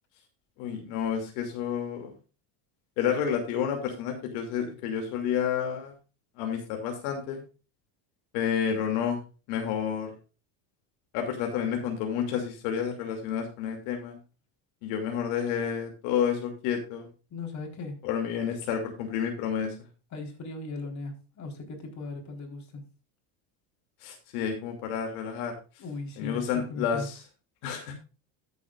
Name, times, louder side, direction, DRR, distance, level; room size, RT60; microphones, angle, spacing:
voice 1, 0.6-2.1 3.0-5.9 6.4-7.4 8.3-9.2 9.5-10.1 11.1-14.2 14.8-17.1 18.0-19.7 24.0-25.5 26.2-27.1 27.6-27.9, left 8 dB, 80° left, 2.8 m, -30 dB
voice 2, 17.3-18.0 20.1-22.9 25.8-27.1, left 3 dB, 40° left, 4.3 m, -38 dB
14.0 x 8.4 x 2.5 m
cardioid pair, 130°, 45 cm